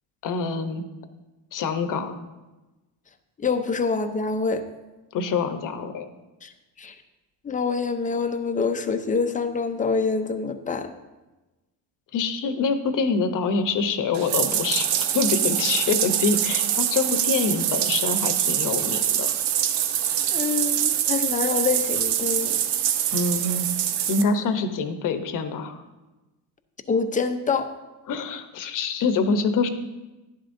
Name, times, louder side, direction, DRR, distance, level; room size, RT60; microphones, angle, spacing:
voice 1, 0.2-0.8 1.5-2.2 5.1-6.1 12.1-19.3 23.1-23.7 24.1-25.8 28.1-29.7, left 4 dB, 50° left, 8 dB, 0.9 m, -25 dB
voice 2, 3.4-4.6 6.4-6.5 6.8-6.9 7.4-10.9 20.3-22.6 26.9-27.7, left 4 dB, 20° left, 8 dB, 0.6 m, -26 dB
Bathtub (filling or washing), 14.1-24.2, right 10 dB, 80° right, 0.8 m, -24 dB
11.5 x 11.0 x 2.6 m, 1.1 s
cardioid pair, 125°, 40 cm